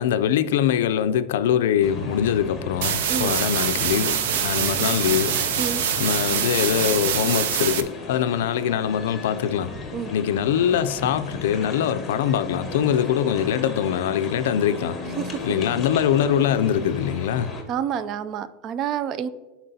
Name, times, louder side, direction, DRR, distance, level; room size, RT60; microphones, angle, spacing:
voice 1, 0.0-4.2 4.4-5.3 6.0-9.7 10.1-15.0 15.4-17.5, left 9 dB, 85° left, 0.4 m, -23 dB
sound 1, 1.8-17.6, left 2 dB, 15° left, 1.1 m, -35 dB
sound 2, 2.8-7.8, right 8 dB, 80° right, 0.6 m, -24 dB
voice 2, 17.7-19.3, right 8 dB, 35° right, 0.3 m, -28 dB
11.5 x 4.3 x 2.7 m
supercardioid pair, 155°, 0 cm